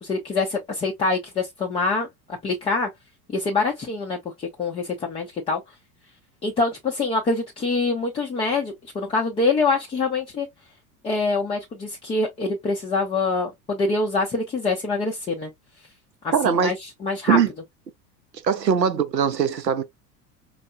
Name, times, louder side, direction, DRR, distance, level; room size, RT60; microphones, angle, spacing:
voice 1, 0.0-2.1 2.4-2.9 3.3-5.6 6.4-10.5 11.0-15.5 16.2-17.4, left 3 dB, 10° left, 0.4 m, -25 dB
voice 2, 16.3-16.7 17.3-17.5 18.4-19.8, right 7 dB, 90° right, 0.6 m, -21 dB
4.3 x 2.1 x 2.2 m
figure-of-eight pair, 75°, 49 cm